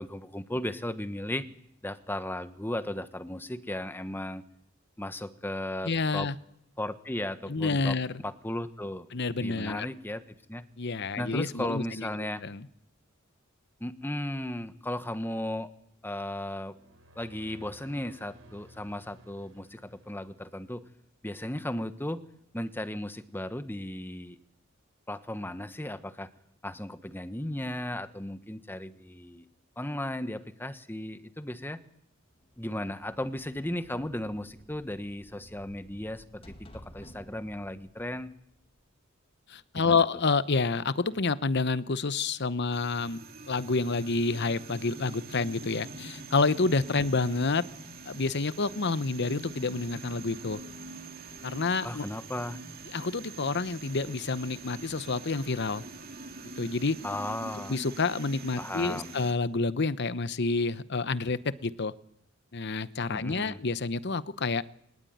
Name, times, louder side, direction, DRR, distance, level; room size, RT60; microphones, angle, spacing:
voice 1, 0.0-1.5 1.8-4.4 5.0-6.3 6.8-9.1 9.4-10.7 11.2-12.4 13.8-15.7 16.0-16.7 17.2-20.8 21.2-22.2 22.5-24.4 25.1-26.3 26.6-29.4 29.8-31.8 32.6-38.3 39.7-40.0 51.8-52.6 57.0-57.8 58.6-59.1 63.1-63.6, left 1 dB, 10° left, 11 dB, 1.2 m, -35 dB
voice 2, 5.8-6.3 7.5-8.2 9.1-9.9 10.8-12.1 12.4-12.7 39.5-43.2 43.5-47.6 48.1-50.6 51.4-52.0 52.9-55.8 56.6-57.0 57.7-61.9 62.5-64.6, left 3 dB, 55° left, 15 dB, 0.9 m, -28 dB
sound 1, 16.6-20.9, equal, 75° right, 4.1 m, -55 dB
sound 2, 32.3-39.1, equal, 30° left, 2.6 m, -54 dB
sound 3, 42.7-59.3, right 3 dB, 50° right, 2.3 m, -44 dB
23.0 x 19.5 x 9.4 m, 0.72 s
head